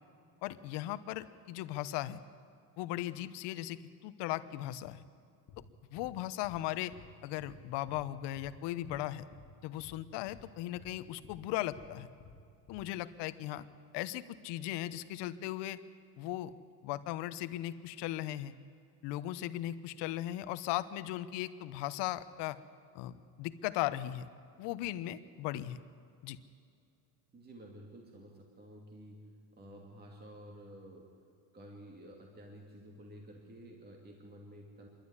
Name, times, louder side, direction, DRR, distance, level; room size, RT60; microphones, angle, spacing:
voice 1, 0.4-2.2 2.8-5.0 5.9-6.9 7.2-9.2 9.6-12.1 12.7-13.6 13.9-15.8 16.2-16.5 16.8-18.5 19.0-22.6 22.9-24.3 24.6-25.8 26.2-26.4, left 14 dB, 65° left, 13 dB, 1.1 m, -37 dB
sound 1, 5.5-5.6 6.0-6.1 6.4-6.6 6.9-7.1 7.4-7.6 7.9-8.0 8.4-8.5 8.8-9.0 9.3-9.5 9.8-10.0 10.3-10.4 10.8-10.9 11.2-11.4 11.7-11.9 12.2-12.4 12.7-12.8, left 6 dB, 40° left, 2.6 m, -54 dB
voice 2, 27.3-31.1 31.5-34.9, equal, 20° right, 0 dB, 2.7 m, -52 dB
26.5 x 12.0 x 9.8 m, 2.5 s
supercardioid pair, 125°, 46 cm